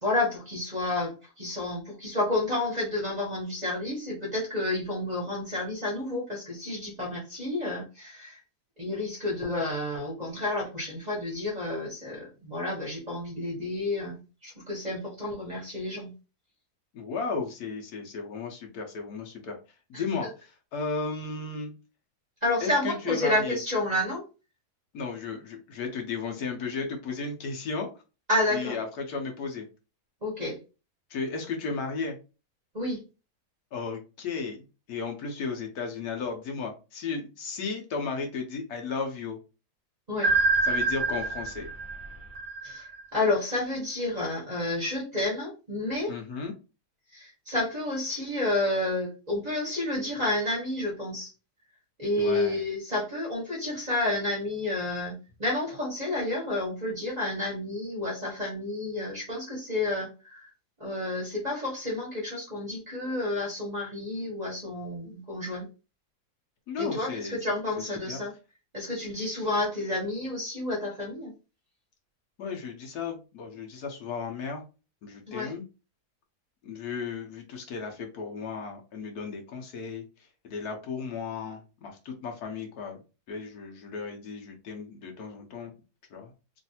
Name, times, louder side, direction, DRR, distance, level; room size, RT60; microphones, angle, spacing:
voice 1, 0.0-8.4 8.8-16.1 22.4-24.2 28.3-28.8 30.2-30.6 32.7-33.0 40.1-40.3 42.6-46.1 47.1-51.3 52.0-60.5 60.8-65.7 66.8-68.3 68.7-71.3 75.3-75.5, left 2 dB, 30° right, -5 dB, 1.0 m, -30 dB
voice 2, 16.9-19.6 19.9-21.7 22.6-23.6 24.9-27.9 28.5-29.6 31.1-32.2 33.7-39.4 40.6-41.7 46.1-46.5 52.1-52.6 66.7-67.4 67.8-68.2 72.4-74.6 75.0-75.6 76.6-80.0 80.4-83.0 83.3-85.7 86.1-86.3, left 5 dB, 70° left, 2 dB, 1.2 m, -34 dB
sound 1, 40.2-43.2, right 3 dB, 50° right, 0.6 m, -27 dB
3.1 x 2.6 x 2.7 m, 0.31 s
omnidirectional pair, 1.8 m